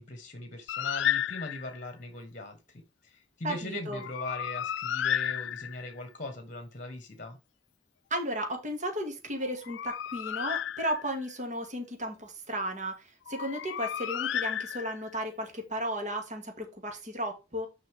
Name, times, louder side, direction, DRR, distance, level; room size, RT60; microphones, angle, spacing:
voice 1, 0.0-7.4, left 2 dB, 45° left, 1.4 m, -40 dB
Bird, 0.7-1.8 3.9-6.0 9.4-11.3 13.3-15.2, left 10 dB, 75° left, 0.3 m, -33 dB
voice 2, 3.4-4.0 8.1-17.7, equal, 40° right, 2.3 m, -34 dB
6.7 x 5.7 x 3.6 m
head